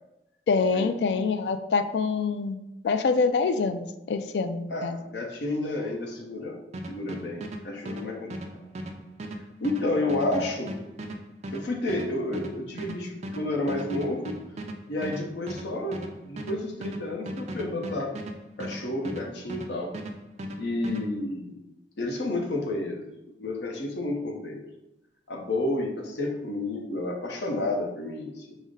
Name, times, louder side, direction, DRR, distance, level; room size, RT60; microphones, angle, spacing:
voice 1, 0.5-2.6 2.8-5.0, left 4 dB, 70° left, 10 dB, 0.3 m, -25 dB
voice 2, 4.7-6.6 6.9-8.3 9.6-10.7 11.5-14.4 14.9-16.0 16.3-18.1 18.6-19.9 20.6-21.6 22.0-23.1 23.4-24.6 25.3-28.6, left 2 dB, 85° left, 1 dB, 0.8 m, -30 dB
sound 1, 6.7-19.7 19.9-21.0, equal, 40° right, 0.4 m, -37 dB
5.0 x 2.1 x 3.9 m, 0.91 s
head